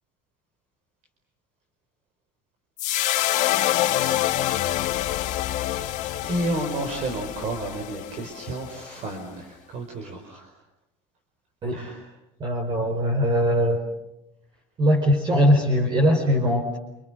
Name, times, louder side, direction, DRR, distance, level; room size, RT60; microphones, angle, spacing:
sound 1, 2.8-9.2, left 14 dB, 60° left, 1.6 m, -26 dB
voice 1, 6.2-10.5 11.7-12.0 12.7-12.9, right 1 dB, 55° right, 4 dB, 5.0 m, -31 dB
voice 2, 12.4-13.8 14.8-16.8, equal, 35° right, 2 dB, 4.6 m, -21 dB
29.5 x 29.0 x 6.6 m, 0.89 s
cardioid pair, 130°, 14 cm